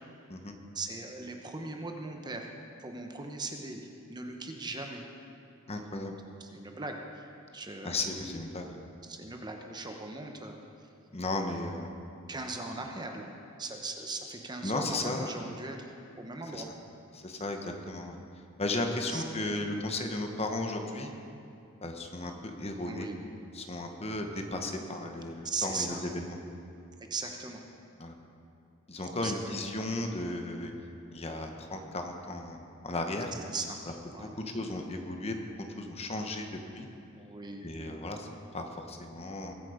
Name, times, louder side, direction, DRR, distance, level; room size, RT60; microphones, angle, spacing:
voice 1, 0.7-2.5 2.8-3.8 4.1-5.0 6.4-8.1 9.0-10.6 12.3-13.3 13.6-16.7 18.8-19.2 22.8-23.2 25.4-26.0 27.0-27.6 29.0-29.5 33.5-33.8 34.1-34.3 37.2-37.7, right 3 dB, 20° right, 3 dB, 1.0 m, -39 dB
voice 2, 5.7-6.1 7.8-8.8 11.1-11.9 14.6-15.4 16.5-16.6 17.1-18.2 18.6-21.1 21.8-23.1 23.5-26.4 28.0-28.1 28.9-30.7 31.1-32.6 32.8-33.3 34.2-35.4 35.8-36.9 37.6-39.5, left 2 dB, 30° left, 4 dB, 1.1 m, -35 dB
21.5 x 8.5 x 5.0 m, 2.6 s
head